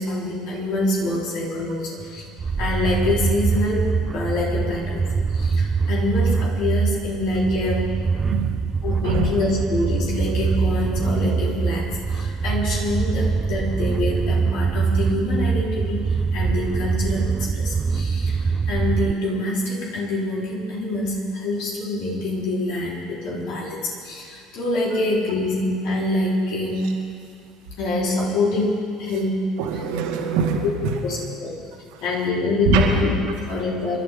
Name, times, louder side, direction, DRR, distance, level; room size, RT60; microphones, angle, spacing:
voice 1, 0.0-2.3 2.6-8.0 8.8-26.9 27.8-29.6 30.6-30.7 31.0-31.6 32.0-34.0, left 2 dB, 60° left, -4 dB, 4.1 m, -25 dB
sound 1, 2.4-19.1, right 5 dB, 30° right, 0.4 m, -23 dB
voice 2, 29.6-30.9 31.9-32.0 32.7-32.8, right 4 dB, 60° right, 1 dB, 2.2 m, -23 dB
27.0 x 12.5 x 3.8 m, 2.2 s
figure-of-eight pair, 60°, 0 cm